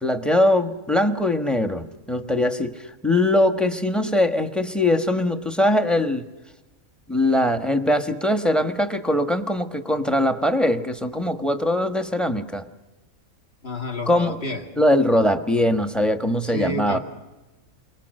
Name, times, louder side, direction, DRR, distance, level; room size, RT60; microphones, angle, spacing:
voice 1, 0.0-6.3 7.1-12.6 14.1-14.4 14.8-17.0, left 1 dB, ahead, 10 dB, 1.1 m, -21 dB
voice 2, 13.6-14.7 16.4-17.0, left 1 dB, 45° left, 3 dB, 2.6 m, -29 dB
29.5 x 24.0 x 6.5 m, 1.1 s
omnidirectional pair, 1.5 m